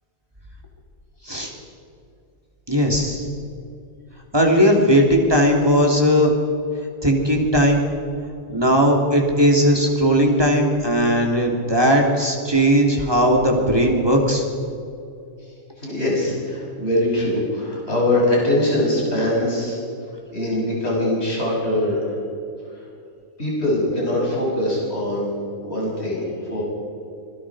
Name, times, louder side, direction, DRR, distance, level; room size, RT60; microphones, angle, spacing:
voice 1, 1.2-1.5 15.8-19.8 20.3-22.1 22.7-22.9 23.4-25.3 25.6-26.6, left 1 dB, 30° left, -4 dB, 7.6 m, -22 dB
voice 2, 2.7-3.2 4.3-6.3 7.0-7.8 8.5-14.4, equal, 10° right, 0 dB, 3.2 m, -17 dB
26.5 x 22.5 x 5.0 m, 2.5 s
omnidirectional pair, 2.4 m